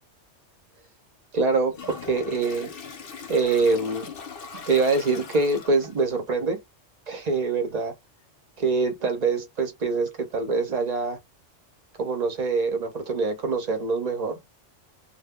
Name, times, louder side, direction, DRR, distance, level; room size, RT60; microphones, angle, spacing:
voice 1, 1.3-2.7 3.3-4.1 4.5-6.6 7.1-7.9 8.6-11.2 12.0-14.4, right 4 dB, 45° right, 0.6 m, -24 dB
Toilet flush, 1.7-6.1, left 5 dB, 55° left, 0.8 m, -40 dB
2.2 x 2.1 x 3.5 m
omnidirectional pair, 1.3 m